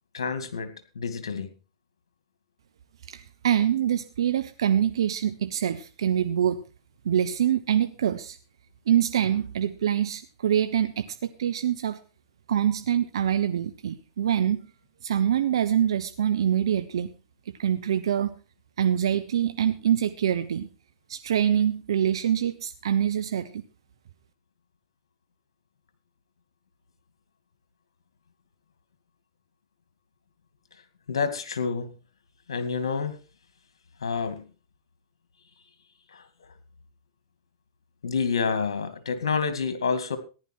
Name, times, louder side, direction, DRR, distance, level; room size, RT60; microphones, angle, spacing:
voice 1, 0.1-1.5 31.1-31.9 32.5-33.2 34.0-34.4 36.1-36.3 38.0-40.2, left 5 dB, 85° left, 10 dB, 2.3 m, -28 dB
voice 2, 3.1-6.6 7.0-8.4 8.9-12.0 12.5-14.6 15.0-17.1 17.5-18.3 18.8-20.7 21.1-23.6, right 9 dB, 80° right, 10 dB, 0.9 m, -25 dB
15.0 x 11.0 x 4.5 m, 0.34 s
hypercardioid pair, 115°, 3 cm